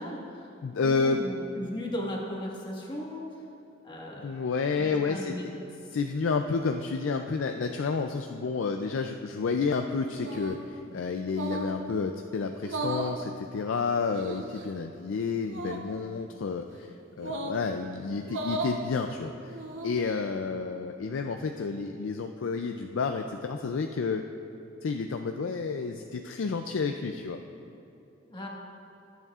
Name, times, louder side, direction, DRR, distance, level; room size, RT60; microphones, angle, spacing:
voice 1, 0.0-0.5 0.8-3.2 3.8-5.5 28.2-28.5, left 1 dB, 25° left, -3 dB, 1.5 m, -37 dB
voice 2, 0.6-1.2 4.2-5.5 5.9-16.9 17.2-19.6 19.8-24.2 24.8-27.4, left 4 dB, 70° left, 5 dB, 0.4 m, -30 dB
sound 1, 10.2-10.7 11.3-11.8 12.6-13.2 14.1-14.6 15.5-15.8 17.2-17.6 18.2-18.8 19.5-20.0, right 2 dB, 65° right, 0.9 m, -35 dB
19.5 x 8.1 x 2.4 m, 2.7 s
head